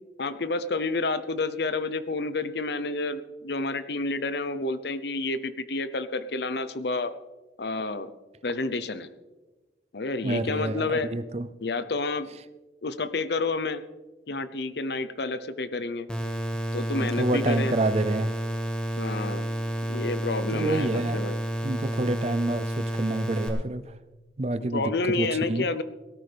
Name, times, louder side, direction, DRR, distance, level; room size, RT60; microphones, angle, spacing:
voice 1, 0.2-7.1 7.6-8.1 8.4-9.1 9.9-11.1 11.6-12.3 12.8-13.8 14.3-16.1 16.7-17.8 19.0-19.5 19.9-21.4 24.7-25.8, left 3 dB, 65° left, 13 dB, 0.7 m, -29 dB
voice 2, 10.2-11.5 17.0-18.3 20.5-21.2 21.6-23.8 24.4-25.6, right 2 dB, 35° right, 12 dB, 0.5 m, -28 dB
sound 1, 16.1-23.5, equal, 5° left, 1.6 m, -30 dB
18.0 x 13.5 x 3.4 m, 1.2 s
head